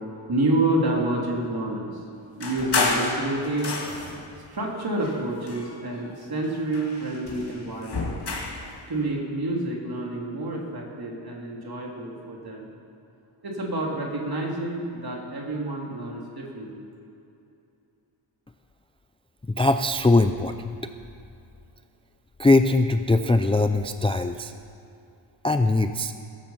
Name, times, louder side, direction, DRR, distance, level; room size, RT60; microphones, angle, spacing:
voice 1, 0.3-2.0 2.4-3.8 4.5-8.2 8.9-12.7 13.4-16.9, right 2 dB, 45° right, -1 dB, 3.1 m, -28 dB
sound 1, 2.4-4.3 5.0-6.1 6.4-8.7, left 3 dB, 50° left, 2.4 m, -30 dB
voice 2, 19.5-20.7 22.4-24.5 25.4-26.1, left 2 dB, 10° left, 8 dB, 0.4 m, -21 dB
17.5 x 14.5 x 5.7 m, 2.6 s
wide cardioid pair, 145°, 49 cm